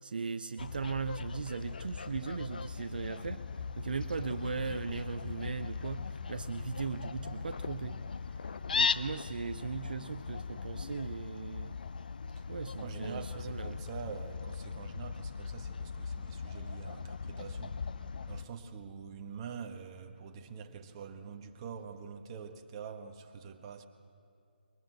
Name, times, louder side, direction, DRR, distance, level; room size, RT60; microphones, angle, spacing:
voice 1, 0.0-8.0 8.3-8.5 8.7-11.8 12.5-13.8, right 5 dB, 55° right, 10 dB, 0.6 m, -38 dB
Fowl, 0.6-18.5, left 5 dB, 55° left, 0.6 m, -39 dB
voice 2, 12.8-23.9, right 6 dB, 25° right, 5 dB, 1.3 m, -45 dB
21.5 x 20.5 x 7.8 m, 2.5 s
figure-of-eight pair, 150°, 6 cm